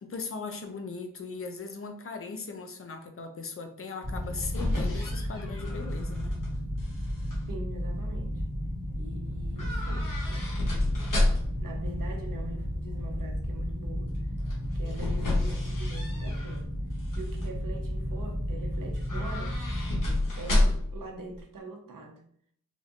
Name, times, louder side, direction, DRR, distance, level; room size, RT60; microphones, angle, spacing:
voice 1, 0.0-6.4, left 4 dB, 40° left, 5 dB, 0.5 m, -39 dB
sound 1, 4.0-20.2, equal, 25° left, 1.3 m, -33 dB
sound 2, 4.1-6.5 6.8-7.4 9.6-11.7 14.4-16.6 17.0-17.5 18.9-21.0 21.3-21.4, left 1 dB, 70° left, 1.0 m, -30 dB
voice 2, 7.5-8.4 9.0-10.5 11.1-14.3 14.7-16.7 17.2-19.6 20.4-22.2, right 2 dB, 70° right, 3 dB, 0.7 m, -43 dB
3.5 x 2.6 x 2.4 m, 0.64 s
wide cardioid pair, 105°, 33 cm